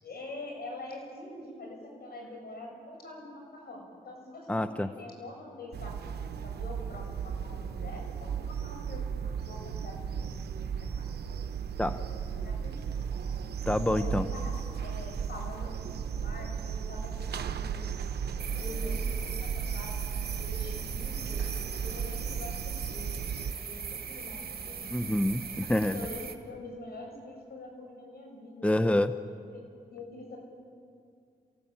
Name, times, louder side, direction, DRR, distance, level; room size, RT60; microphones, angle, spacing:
voice 1, 0.0-10.3 10.7-11.1 12.0-12.9 13.9-14.5 14.8-23.1 23.4-25.1 25.8-28.7 29.2-29.6 29.9-30.4, left 1 dB, 75° left, 0 dB, 7.6 m, -45 dB
voice 2, 4.5-4.9 11.8-12.0 13.7-14.3 24.9-26.1 28.6-29.1, left 1 dB, 10° left, 10 dB, 0.8 m, -27 dB
sound 1, 5.7-23.5, right 7 dB, 85° right, 0.9 m, -35 dB
sound 2, 18.4-26.3, right 6 dB, 70° right, 1.9 m, -40 dB
27.5 x 17.0 x 8.9 m, 2.3 s
cardioid pair, 55°, 16 cm